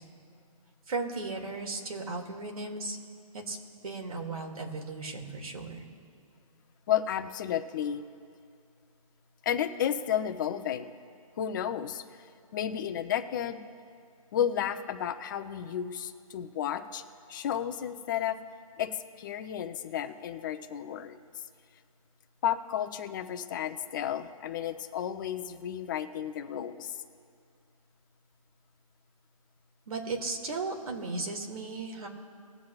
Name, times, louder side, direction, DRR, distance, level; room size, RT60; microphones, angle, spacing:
voice 1, 0.9-3.0 3.3-3.6 3.8-5.9 29.9-32.1, right 3 dB, 75° right, 1 dB, 2.3 m, -36 dB
voice 2, 6.9-8.0 9.4-10.9 11.4-13.6 14.3-17.0 17.3-18.4 18.8-21.2 22.4-27.0, left 9 dB, 35° left, 8 dB, 0.7 m, -32 dB
20.5 x 7.5 x 2.4 m, 2.4 s
hypercardioid pair, 155°, 19 cm